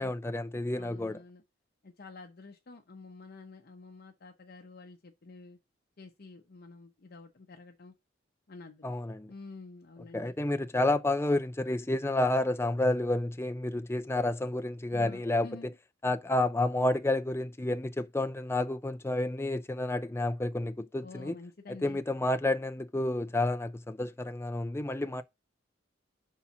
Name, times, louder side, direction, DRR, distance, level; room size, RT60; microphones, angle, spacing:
voice 1, 0.0-1.2 8.8-9.3 10.1-15.7 16.0-21.4 21.8-25.2, left 1 dB, 15° left, 0.5 m, -30 dB
voice 2, 0.7-1.4 1.8-5.6 6.0-7.9 8.5-8.9 9.3-10.3 14.9-15.7 21.0-22.0, left 3 dB, 50° left, 0.8 m, -49 dB
5.6 x 4.2 x 5.7 m
head